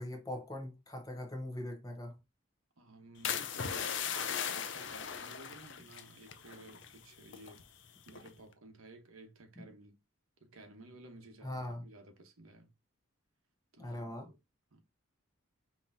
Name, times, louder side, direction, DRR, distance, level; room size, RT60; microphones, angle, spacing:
voice 1, 0.0-2.2 9.6-9.7 11.4-11.9 13.8-14.3, left 1 dB, 15° left, 1.0 m, -41 dB
voice 2, 2.8-7.7 8.1-10.0 10.4-12.7 13.7-14.3 14.7-14.8, right 2 dB, 85° right, 1.0 m, -55 dB
sound 1, 3.2-7.0 7.2-7.6 8.1-8.4, left 7 dB, 60° left, 0.5 m, -38 dB
5.6 x 2.9 x 2.6 m
head